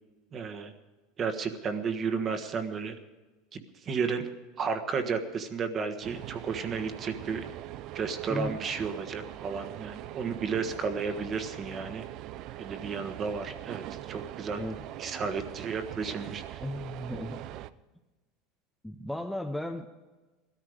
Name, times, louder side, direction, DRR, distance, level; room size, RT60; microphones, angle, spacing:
voice 1, 0.3-0.7 1.2-3.0 3.5-4.3 4.6-7.5 7.9-12.0 12.6-16.6, right 5 dB, 25° right, 8 dB, 1.4 m, -33 dB
sound 1, 6.0-17.7, right 14 dB, 45° right, 0.5 m, -42 dB
voice 2, 16.6-17.4 18.8-19.9, left 1 dB, ahead, 3 dB, 0.7 m, -35 dB
19.0 x 13.5 x 5.0 m, 1.2 s
supercardioid pair, 160°, 0 cm